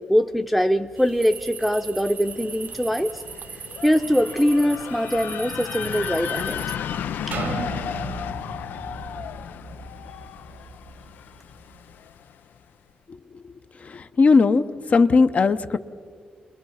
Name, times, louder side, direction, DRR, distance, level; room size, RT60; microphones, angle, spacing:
voice 1, 0.0-3.2 3.8-6.6, equal, ahead, 5 dB, 0.7 m, -22 dB
sound 1, 1.0-6.8, right 6 dB, 60° right, 0.8 m, -39 dB
sound 2, 2.5-12.3, left 9 dB, 90° left, 0.5 m, -34 dB
sound 3, 7.3-11.1 11.6-11.7, right 4 dB, 85° right, 1.4 m, -35 dB
voice 2, 13.8-15.8, left 4 dB, 50° left, 10 dB, 0.9 m, -18 dB
30.0 x 21.0 x 5.7 m, 2.2 s
cardioid pair, 85°, 3 cm